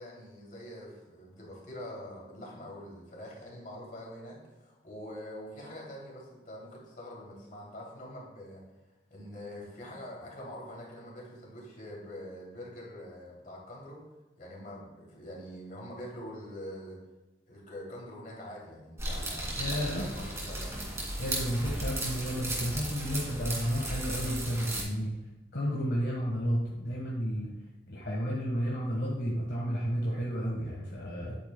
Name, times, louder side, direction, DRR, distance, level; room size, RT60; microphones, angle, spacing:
voice 1, 0.0-8.6 9.1-14.0 14.4-17.0 17.5-20.7, left 1 dB, 45° left, -3 dB, 2.9 m, -44 dB
sound 1, 19.0-24.8, right 1 dB, 15° right, 2.4 m, -35 dB
voice 2, 19.6-20.1 21.2-25.2 25.5-27.5 27.9-31.4, equal, 65° left, -4 dB, 1.4 m, -32 dB
10.5 x 8.5 x 2.2 m, 1.1 s
head